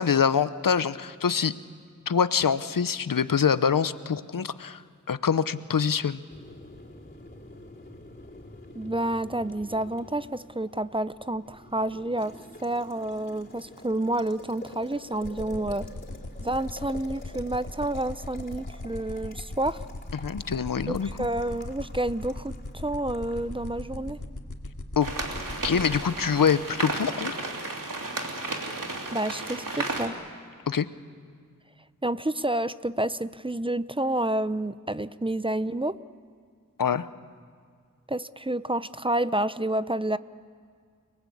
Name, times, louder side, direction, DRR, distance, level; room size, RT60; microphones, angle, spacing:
voice 1, 0.0-1.5 2.1-4.8 5.1-6.2 20.2-21.3 25.0-25.1 25.6-27.4 30.7-30.9 36.8-37.1, left 7 dB, 85° left, 14 dB, 0.8 m, -25 dB
Boiling, 6.3-24.2, left 2 dB, 30° left, 4.4 m, -48 dB
voice 2, 8.7-15.9 16.4-19.8 20.9-24.2 29.1-30.1 32.0-36.0 38.1-40.2, right 1 dB, 15° right, 15 dB, 0.6 m, -29 dB
sound 1, 15.1-26.0, left 2 dB, 65° left, 2.4 m, -37 dB
sound 2, 25.0-30.1, right 2 dB, 75° right, 3.1 m, -33 dB
29.5 x 19.0 x 8.5 m, 2.1 s
wide cardioid pair, 50°, 32 cm